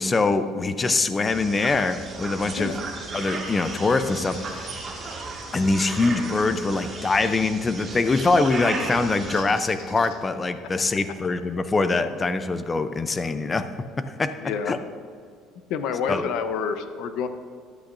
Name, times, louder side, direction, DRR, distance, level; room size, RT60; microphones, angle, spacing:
voice 1, 0.0-2.7 3.1-4.7 5.5-13.7 14.0-14.3 14.7-14.8 16.1-16.2, left 3 dB, 15° left, 10 dB, 0.5 m, -23 dB
sound 1, 1.2-9.4, right 3 dB, 25° right, 1.8 m, -35 dB
Bird, 4.3-5.2 7.8-8.0 9.3-10.5, left 4 dB, 90° left, 2.0 m, -47 dB
voice 2, 14.4-14.8 15.7-17.3, left 6 dB, 60° left, 9 dB, 0.8 m, -28 dB
13.5 x 11.5 x 2.6 m, 2.2 s
cardioid pair, 165°, 0 cm